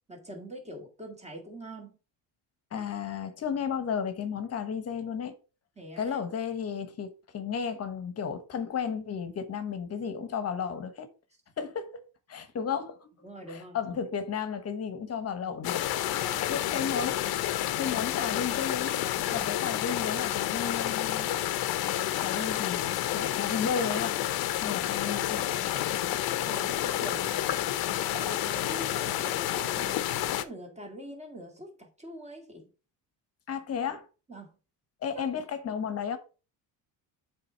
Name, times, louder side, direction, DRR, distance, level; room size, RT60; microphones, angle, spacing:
voice 1, 0.1-1.9 5.8-6.2 13.2-14.0 16.2-16.7 19.3-19.5 26.4-27.6 28.1-30.1 30.3-32.7 34.3-34.5 35.1-35.2, equal, 15° right, 2.0 m, -43 dB
voice 2, 2.7-5.3 6.0-11.1 11.6-12.0 12.3-13.1 13.5-15.8 16.5-17.2 17.8-19.0 19.3-21.3 22.2-24.2 24.6-26.1 33.5-34.1 35.0-36.2, left 7 dB, 35° left, 1.2 m, -33 dB
sound 1, 15.6-30.4, left 13 dB, 60° left, 0.8 m, -30 dB
7.6 x 3.6 x 5.6 m
cardioid pair, 150°, 42 cm